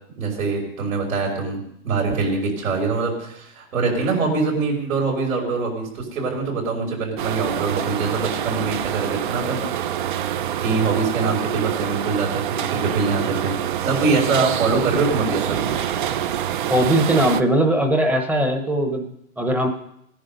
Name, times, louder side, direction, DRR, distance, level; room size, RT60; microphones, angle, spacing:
voice 1, 0.2-9.8 10.3-13.6 13.8-15.9, right 4 dB, 80° right, -1 dB, 5.8 m, -24 dB
sound 1, 7.2-17.4, right 10 dB, 40° right, 0.5 m, -26 dB
voice 2, 16.7-19.7, right 1 dB, 5° right, 5 dB, 0.8 m, -20 dB
18.0 x 10.0 x 5.4 m, 0.74 s
hypercardioid pair, 155°, 41 cm